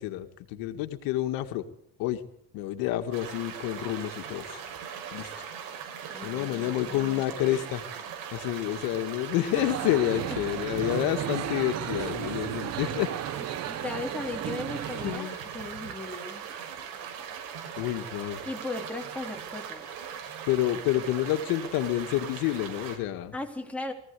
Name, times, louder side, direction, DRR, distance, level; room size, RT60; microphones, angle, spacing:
voice 1, 0.0-1.6 2.0-2.2 2.5-4.6 5.1-5.5 6.2-7.8 8.3-13.1 15.0-15.4 17.8-18.4 20.5-23.3, left 13 dB, 90° left, 8 dB, 2.1 m, -29 dB
sound 1, 3.1-23.0, right 8 dB, 80° right, 6.2 m, -40 dB
voice 2, 6.1-7.6 10.3-10.4 13.6-16.5 18.2-19.9 23.3-23.9, left 2 dB, 5° left, 2 dB, 3.8 m, -37 dB
sound 2, 9.5-15.2, right 11 dB, 50° right, 1.0 m, -34 dB
23.0 x 16.5 x 8.4 m, 0.73 s
cardioid pair, 135°, 34 cm